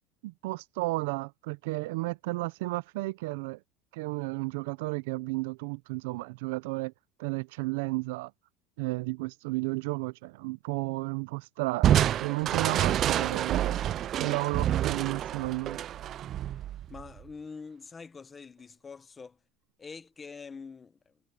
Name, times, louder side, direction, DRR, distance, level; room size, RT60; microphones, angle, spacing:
voice 1, 0.2-3.6 3.9-6.9 7.2-8.3 8.8-13.8 14.2-15.8, right 23 dB, 85° right, 0.6 m, -33 dB
Crushing, 11.8-17.2, right 11 dB, 30° right, 0.4 m, -28 dB
voice 2, 16.9-19.4 19.8-21.1, left 5 dB, 15° left, 0.9 m, -45 dB
cardioid pair, 180°, 0 cm